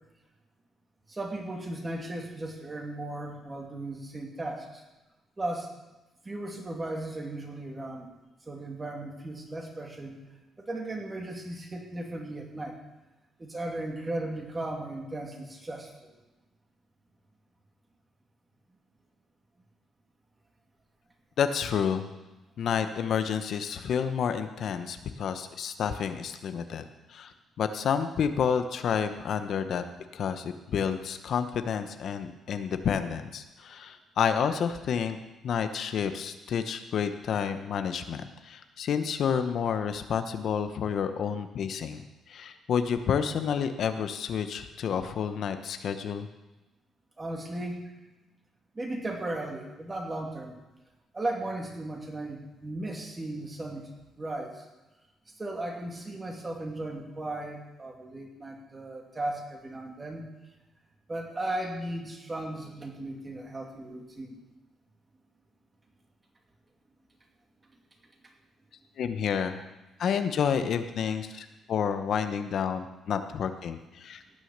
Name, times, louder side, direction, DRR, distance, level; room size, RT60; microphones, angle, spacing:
voice 1, 1.1-4.8 5.4-5.7 6.2-8.1 8.5-10.2 10.6-12.8 13.4-16.1 47.2-47.9 48.7-50.6 51.1-53.9 54.2-54.7 55.3-60.3 61.1-64.4, right 1 dB, 25° right, 1 dB, 2.6 m, -36 dB
voice 2, 21.4-22.1 22.6-26.8 27.1-29.8 30.1-35.2 35.4-46.3 69.0-69.6 70.0-74.2, left 7 dB, 65° left, 9 dB, 0.8 m, -30 dB
17.0 x 6.3 x 6.6 m, 1.0 s
cardioid pair, 90°, 0 cm